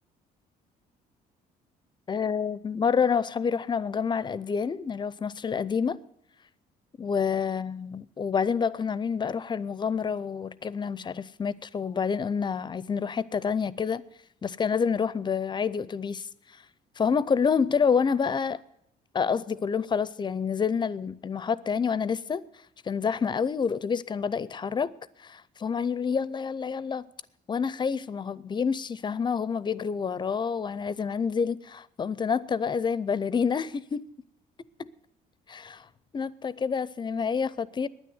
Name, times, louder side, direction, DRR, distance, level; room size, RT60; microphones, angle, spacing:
voice 1, 2.1-6.0 7.0-14.0 14.4-16.3 17.0-18.6 19.1-22.4 22.8-24.9 25.2-27.1 27.5-34.1 34.8-34.9 35.5-35.8 36.1-37.9, left 6 dB, 25° left, 0.5 m, -28 dB
9.8 x 9.4 x 9.4 m
cardioid pair, 110°, 17 cm